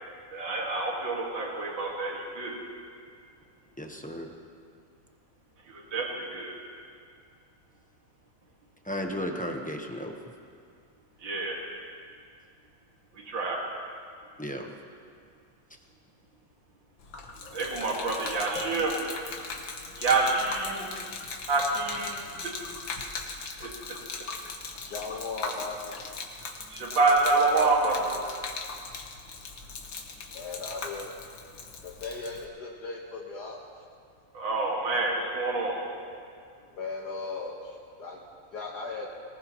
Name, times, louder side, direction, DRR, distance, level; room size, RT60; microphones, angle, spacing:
voice 1, 0.3-2.6 5.6-6.6 11.2-11.6 13.1-13.6 17.5-19.0 20.0-20.9 21.4-22.1 22.4-22.5 23.6-23.7 26.7-28.2 30.2-30.3 34.3-35.8, right 3 dB, 80° right, -2 dB, 2.7 m, -27 dB
voice 2, 3.8-4.3 8.9-10.1 14.4-14.7, equal, 5° left, 2 dB, 0.6 m, -34 dB
Gurgling / Liquid, 17.0-32.4, left 4 dB, 80° left, 2.0 m, -39 dB
voice 3, 24.8-25.9 27.2-28.0 30.3-31.1 31.8-33.6 36.7-38.2 38.5-39.1, left 4 dB, 60° left, -3 dB, 2.0 m, -37 dB
22.5 x 19.0 x 3.1 m, 2.3 s
omnidirectional pair, 2.0 m